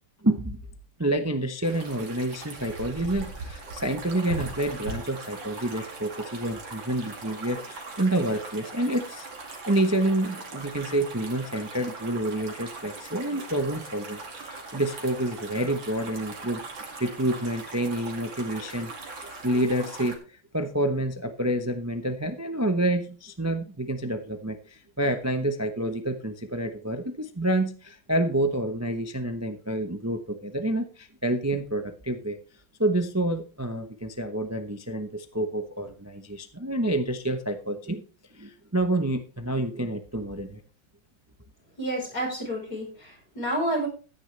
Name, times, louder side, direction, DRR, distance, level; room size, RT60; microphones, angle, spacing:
voice 1, 0.2-0.6 1.0-9.2 9.7-18.9 19.2-20.1 20.5-32.4 32.8-38.0 38.3-40.6, right 1 dB, 25° right, 7 dB, 0.3 m, -28 dB
sound 1, 1.6-20.2, right 3 dB, 80° right, 3.1 m, -40 dB
voice 2, 41.8-43.9, right 1 dB, 50° left, -4 dB, 5.3 m, -29 dB
14.0 x 9.8 x 3.3 m, 0.36 s
omnidirectional pair, 2.1 m